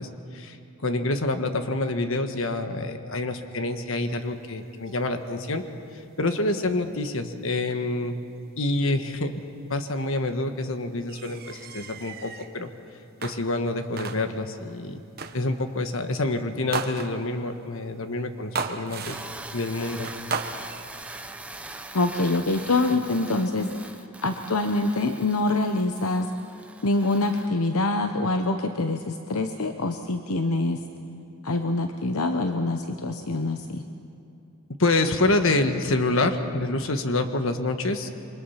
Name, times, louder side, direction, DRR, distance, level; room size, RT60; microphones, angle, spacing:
voice 1, 0.0-5.6 5.9-8.2 8.6-9.4 9.7-12.7 13.2-15.0 15.3-19.2 19.5-20.1 34.8-38.2, left 2 dB, 65° left, 7 dB, 1.4 m, -27 dB
sound 1, 11.1-12.5 13.2-13.7 14.0-14.5 15.2-15.5 16.7-17.4 18.5-19.5 20.0-20.8, right 4 dB, 45° right, 1.2 m, -34 dB
sound 2, 19.1-27.5, right 2 dB, 5° right, 0.7 m, -42 dB
voice 2, 21.9-23.7 23.9-26.3 26.8-30.8 31.4-33.8, left 2 dB, 80° left, 6 dB, 0.9 m, -25 dB
27.5 x 24.5 x 5.8 m, 2.7 s
head